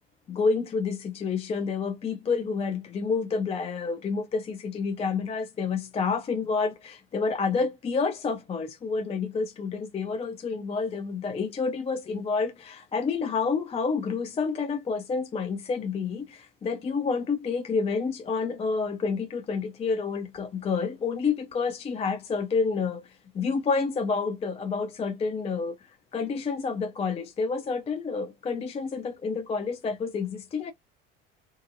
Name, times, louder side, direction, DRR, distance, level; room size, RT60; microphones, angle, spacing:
voice 1, 0.3-25.8 26.1-30.7, left 4 dB, 20° left, 0.4 m, -29 dB
2.5 x 2.5 x 2.5 m
hypercardioid pair, 65°, 31 cm